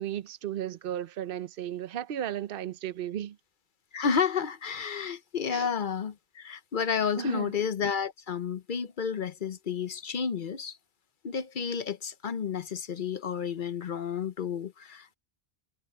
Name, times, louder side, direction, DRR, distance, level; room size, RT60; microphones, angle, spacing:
voice 1, 0.0-3.4 5.5-5.7 7.2-7.5, right 10 dB, 60° right, 0.9 m, -34 dB
voice 2, 3.9-10.8 11.2-15.2, left 6 dB, 55° left, 0.9 m, -31 dB
omnidirectional pair, 1.1 m